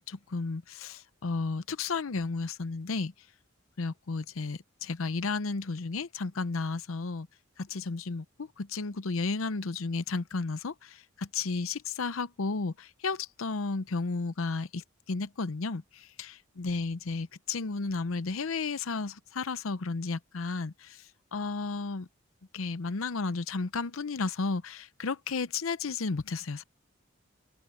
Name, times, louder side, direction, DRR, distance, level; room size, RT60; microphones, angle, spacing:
voice 1, 0.0-3.1 3.8-7.3 7.6-22.1 22.5-26.6, left 4 dB, 85° left, 0.7 m, -33 dB
head